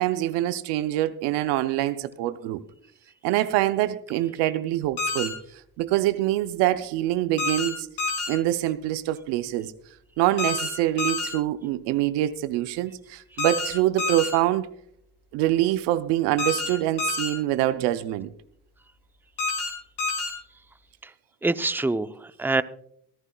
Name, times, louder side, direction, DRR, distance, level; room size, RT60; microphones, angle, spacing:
voice 1, 0.0-2.6 3.2-5.3 5.8-7.9 8.3-9.7 10.2-14.7 15.3-18.3, right 14 dB, 90° right, 0.6 m, -25 dB
sound 1, 5.0-5.3 7.4-7.7 8.0-8.3 10.4-10.7 11.0-11.3 13.4-13.7 14.0-14.3 16.4-16.7 17.0-17.3 19.4-19.7 20.0-20.3, left 3 dB, 80° left, 4.1 m, -27 dB
voice 2, 21.4-22.6, right 3 dB, 5° right, 0.6 m, -25 dB
24.0 x 11.0 x 2.3 m
supercardioid pair, 50°, 40 cm